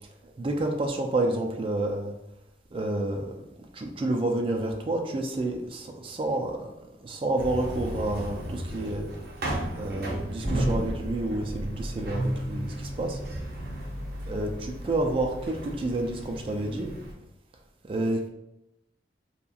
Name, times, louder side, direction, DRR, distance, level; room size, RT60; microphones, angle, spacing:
voice 1, 0.2-2.1 2.7-3.3 3.7-6.7 7.0-9.1 9.8-13.2 14.3-16.9 17.8-18.3, right 2 dB, 30° right, 1 dB, 0.3 m, -29 dB
sound 1, 7.4-17.1, right 1 dB, 55° right, 0.7 m, -33 dB
2.8 x 2.3 x 2.5 m, 0.86 s
head